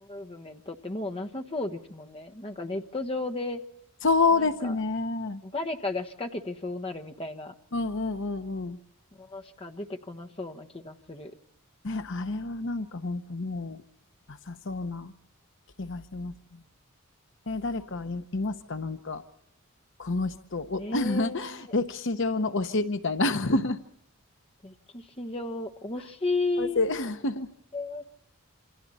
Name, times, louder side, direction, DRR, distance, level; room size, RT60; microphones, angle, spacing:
voice 1, 0.0-3.6 4.4-4.7 5.4-7.5 9.2-11.3 17.9-18.0 20.8-21.6 24.6-26.8 27.7-28.1, left 2 dB, 25° left, 4 dB, 1.2 m, -34 dB
voice 2, 4.0-5.4 7.7-8.8 11.8-13.8 14.3-15.1 15.8-16.6 17.5-19.2 20.0-23.8 26.6-27.5, left 3 dB, 60° left, 9 dB, 0.9 m, -29 dB
28.0 x 26.0 x 4.3 m, 0.76 s
head